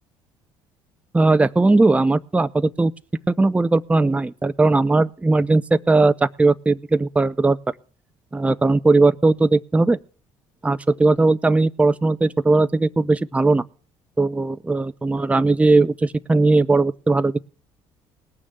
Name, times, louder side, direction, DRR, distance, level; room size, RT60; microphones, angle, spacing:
voice 1, 1.1-2.9 3.3-7.6 8.3-10.0 10.6-13.6 14.2-17.4, right 3 dB, 10° right, 13 dB, 0.6 m, -18 dB
18.5 x 6.2 x 8.0 m, 0.42 s
supercardioid pair, 70°, 12 cm